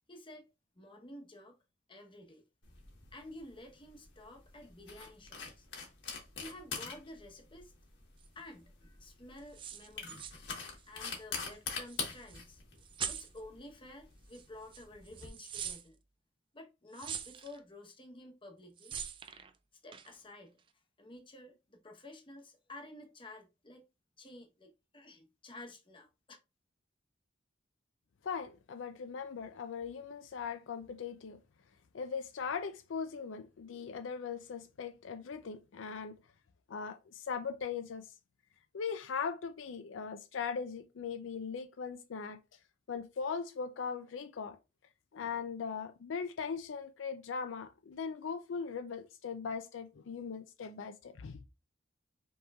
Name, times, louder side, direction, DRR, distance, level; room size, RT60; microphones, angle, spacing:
voice 1, 0.1-0.5 0.7-1.6 1.9-2.4 3.1-5.7 6.4-7.7 8.3-10.2 10.9-12.6 13.1-16.0 16.5-19.0 19.8-23.8 24.2-26.4, left 1 dB, 25° left, 0.9 m, -51 dB
sound 1, 2.6-15.3, left 5 dB, 65° left, 1.3 m, -44 dB
sound 2, 8.2-8.3 9.4-11.2 11.5-11.6 11.9-12.4 12.8-13.4 14.3-14.4 14.7-15.8 16.9-17.6 18.8-19.5 19.9-20.2, right 8 dB, 25° right, 0.3 m, -43 dB
voice 2, 28.2-31.4 31.9-36.1 36.7-38.0 38.7-42.4 42.9-44.6 45.1-51.4, left 6 dB, 80° left, 0.4 m, -39 dB
5.2 x 3.0 x 2.3 m
head